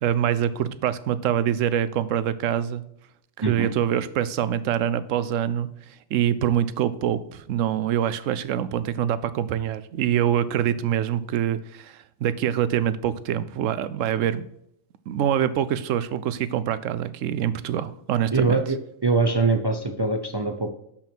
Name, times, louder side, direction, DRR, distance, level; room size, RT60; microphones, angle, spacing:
voice 1, 0.0-2.8 3.5-5.7 6.1-14.5 15.1-18.6, right 10 dB, 85° right, 15 dB, 1.0 m, -25 dB
voice 2, 18.3-18.8 19.0-20.7, right 3 dB, 40° right, 6 dB, 0.3 m, -23 dB
7.1 x 5.7 x 4.5 m, 0.75 s
omnidirectional pair, 1.3 m